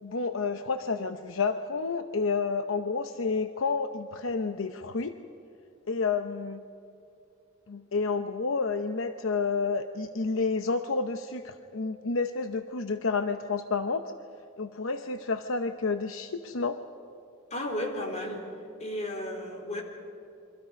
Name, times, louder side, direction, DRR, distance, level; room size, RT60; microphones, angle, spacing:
voice 1, 0.0-5.1 5.9-6.6 7.7-14.1 14.6-16.8, left 4 dB, 70° left, 8 dB, 0.8 m, -30 dB
voice 2, 17.5-18.4 18.8-19.8, left 1 dB, 35° left, 2 dB, 3.8 m, -33 dB
29.0 x 24.5 x 5.3 m, 2.8 s
head